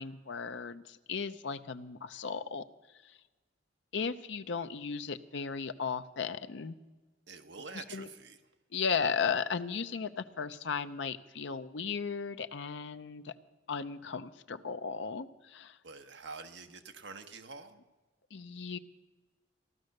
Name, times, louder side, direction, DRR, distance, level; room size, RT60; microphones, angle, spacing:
voice 1, 0.0-2.6 3.0-3.2 3.9-6.8 7.7-8.1 8.7-13.3 13.7-15.8 18.3-18.8, left 5 dB, 70° left, 11 dB, 0.6 m, -36 dB
voice 2, 7.3-8.4 15.8-17.8, right 4 dB, 65° right, 7 dB, 1.1 m, -47 dB
15.0 x 12.0 x 6.5 m, 1.2 s
head